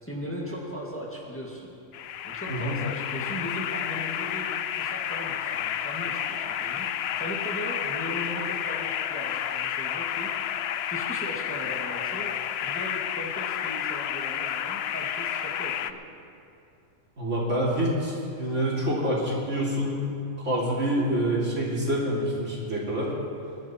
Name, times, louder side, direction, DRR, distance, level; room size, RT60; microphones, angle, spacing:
voice 1, 0.0-1.7 2.2-4.5 4.8-12.4 12.6-16.0, equal, 10° left, -3 dB, 1.9 m, -38 dB
sound 1, 1.9-15.9, left 9 dB, 65° left, 0.7 m, -31 dB
voice 2, 2.5-2.8 17.2-20.0 20.4-23.1, right 1 dB, 70° right, -4 dB, 3.3 m, -27 dB
22.0 x 11.5 x 4.4 m, 2.6 s
omnidirectional pair, 1.3 m